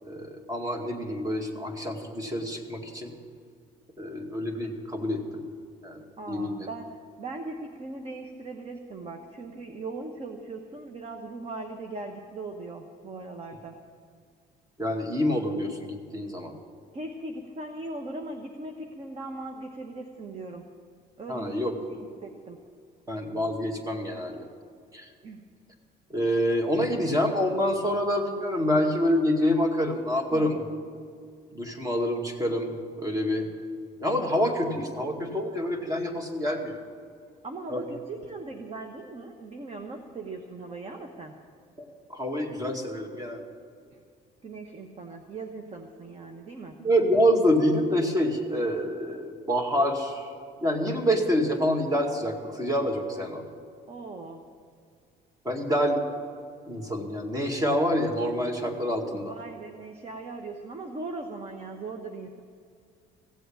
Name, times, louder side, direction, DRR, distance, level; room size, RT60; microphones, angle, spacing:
voice 1, 0.0-3.1 4.0-5.4 5.8-6.7 14.8-16.5 21.3-22.0 23.1-24.5 24.9-25.1 26.1-30.7 31.5-33.5 34.0-36.8 37.7-37.9 41.8-43.4 46.8-50.3 50.6-53.5 55.4-56.0 56.7-59.3, equal, 20° right, 3 dB, 2.2 m, -27 dB
voice 2, 6.2-6.9 7.2-13.8 16.9-20.7 21.2-21.6 21.9-22.6 25.2-25.4 30.3-30.5 37.4-41.3 43.9-44.0 44.4-46.8 53.9-54.4 59.1-62.4, right 3 dB, 35° right, 4 dB, 1.2 m, -39 dB
16.5 x 7.9 x 8.8 m, 2.2 s
cardioid pair, 110°, 17 cm